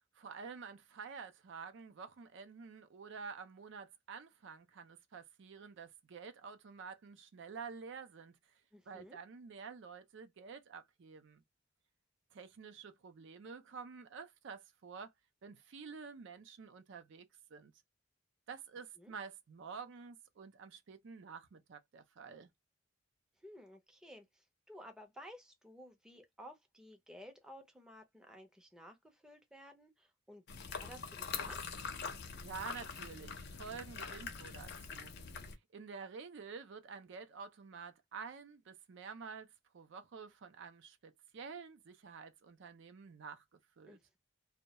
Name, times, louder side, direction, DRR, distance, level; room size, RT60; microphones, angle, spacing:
voice 1, 0.1-8.6 8.9-11.4 12.3-15.1 15.4-17.3 17.5-17.7 18.5-22.5 32.4-35.1 35.7-43.4 43.8-44.0, right 5 dB, 65° right, 0.4 m, -49 dB
voice 2, 8.7-9.2 19.0-19.1 23.4-31.7 43.9-44.2, equal, 5° right, 0.5 m, -55 dB
sound 1, 30.5-35.5, left 5 dB, 55° left, 0.5 m, -44 dB
2.2 x 2.1 x 2.7 m
head